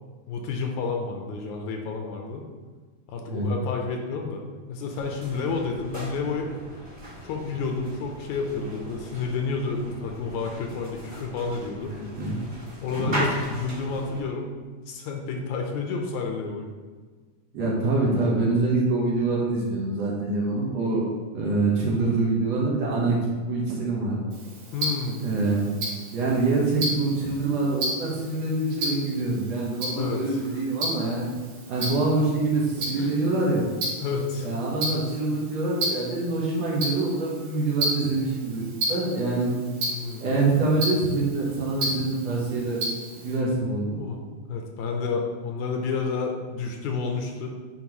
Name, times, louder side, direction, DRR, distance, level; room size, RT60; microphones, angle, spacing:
voice 1, 0.3-2.5 3.1-4.4 4.7-6.6 7.2-12.0 12.8-14.5 14.9-16.7 24.7-25.3 30.0-30.6 31.7-31.9 32.9-33.2 34.0-34.5 39.9-40.3 43.9-44.2 44.5-47.5, left 4 dB, 80° left, 2 dB, 2.1 m, -30 dB
sound 1, 4.9-14.2, right 1 dB, 25° right, 1.6 m, -38 dB
voice 2, 11.9-12.4 13.0-13.2 17.5-21.0 21.3-23.2 23.5-24.2 25.2-25.7 26.1-31.3 31.7-33.7 34.4-39.5 40.2-42.8 43.2-44.0, right 3 dB, 65° right, -4 dB, 2.1 m, -25 dB
Tick-tock, 24.3-43.4, right 1 dB, 90° right, 3.4 m, -34 dB
9.5 x 4.6 x 3.0 m, 1.4 s
omnidirectional pair, 3.6 m